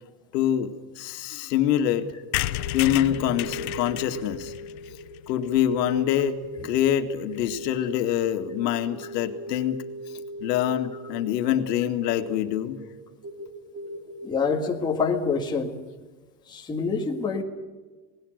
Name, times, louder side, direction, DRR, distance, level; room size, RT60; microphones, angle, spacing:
voice 1, 0.3-2.1 2.7-4.5 5.3-6.4 6.6-9.8 10.4-12.8, left 11 dB, 75° left, 7 dB, 2.1 m, -25 dB
sound 1, 2.2-14.6, right 1 dB, 25° right, 2.6 m, -39 dB
sound 2, 2.3-6.0 6.4-6.5 6.7-6.8 7.0-7.1 7.3-7.6, left 19 dB, 60° left, 0.8 m, -33 dB
voice 2, 14.2-15.8 16.5-17.4, left 5 dB, 10° left, 0 dB, 1.8 m, -26 dB
28.0 x 19.5 x 6.5 m, 1.3 s
supercardioid pair, 170°, 50 cm